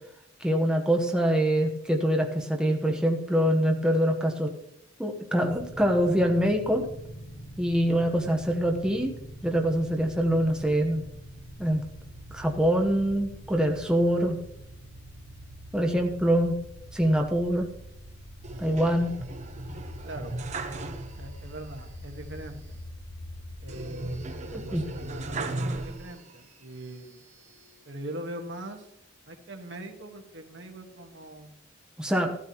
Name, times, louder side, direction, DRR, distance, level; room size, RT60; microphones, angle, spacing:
voice 1, 0.4-4.5 5.0-6.9 7.6-9.1 9.4-11.0 11.6-11.8 12.3-14.4 15.7-16.5 16.9-17.7 18.6-19.1 24.5-24.8 32.0-32.3, equal, 5° right, 1 dB, 1.1 m, -24 dB
sound 1, 5.4-25.4, equal, 70° left, 3.5 m, -44 dB
sound 2, 18.4-21.5 21.8-21.9 23.7-26.4 27.0-27.8, right 2 dB, 40° right, 1.0 m, -37 dB
voice 2, 20.0-20.3 21.2-22.8 23.6-24.3 24.6-27.2 27.8-28.9 29.3-31.6, right 1 dB, 65° right, 5 dB, 1.5 m, -41 dB
14.5 x 12.5 x 3.0 m, 0.78 s
head